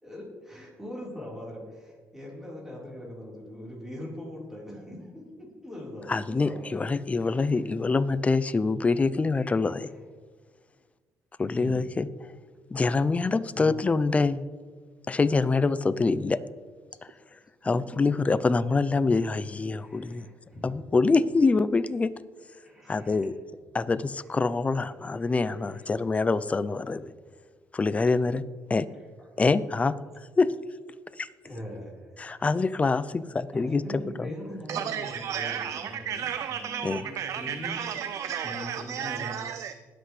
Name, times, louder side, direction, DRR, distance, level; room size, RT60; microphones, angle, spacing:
voice 1, 0.0-7.0 7.4-7.6 9.8-10.0 11.4-11.7 13.5-13.7 16.9-17.0 19.8-20.7 22.6-23.2 24.3-24.4 25.2-25.9 31.4-32.2 33.5-37.9 38.4-39.4, left 1 dB, 10° right, 4.1 m, -41 dB
voice 2, 6.1-9.9 11.4-12.1 12.7-14.4 15.1-16.4 17.7-20.3 20.6-22.1 22.9-23.3 23.7-27.1 27.7-28.4 28.7-28.9 29.4-29.9 30.4-30.5 31.2-31.3 32.2-34.3 36.8-37.0, left 3 dB, 25° left, 0.5 m, -25 dB
voice 3, 34.7-39.7, right 8 dB, 60° right, 0.5 m, -33 dB
20.0 x 8.1 x 3.3 m
cardioid pair, 95°, 6 cm